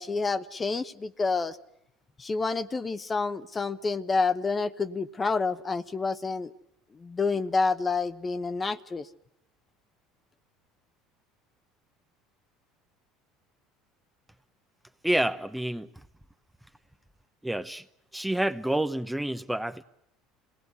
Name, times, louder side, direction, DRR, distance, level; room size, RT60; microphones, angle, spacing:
voice 1, 0.0-1.6 2.2-6.5 7.0-9.1, left 4 dB, 25° left, 12 dB, 1.0 m, -28 dB
voice 2, 15.0-15.9 17.4-17.8 18.1-19.8, right 1 dB, 5° right, 9 dB, 0.9 m, -28 dB
26.5 x 18.5 x 9.4 m, 0.83 s
hypercardioid pair, 75°, 0 cm